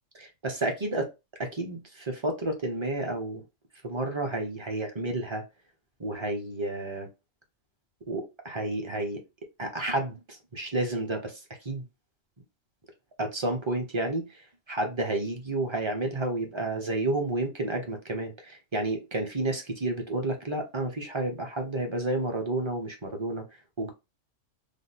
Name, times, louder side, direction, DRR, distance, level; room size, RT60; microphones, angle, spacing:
voice 1, 0.1-1.1 1.6-3.4 3.8-5.4 6.0-7.1 8.1-9.2 9.6-11.4 11.6-11.8 13.2-14.2 14.7-23.4 23.8-23.9, right 2 dB, 30° right, 0.6 m, -30 dB
3.3 x 2.1 x 4.0 m
omnidirectional pair, 1.3 m